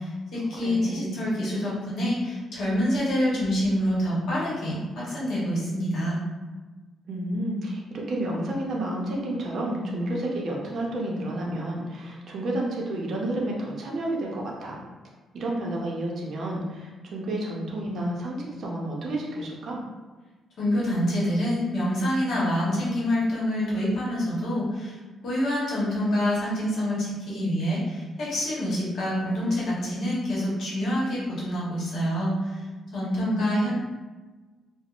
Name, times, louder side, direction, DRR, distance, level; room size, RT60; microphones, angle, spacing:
voice 1, 0.0-6.2 20.6-25.0 25.2-32.6 32.9-33.7, equal, 60° left, -6 dB, 0.9 m, -26 dB
voice 2, 0.5-1.2 7.1-14.8 15.3-19.8 33.1-33.6, right 1 dB, 55° right, -2 dB, 0.5 m, -30 dB
3.4 x 2.0 x 2.4 m, 1.3 s
cardioid pair, 145°, 0 cm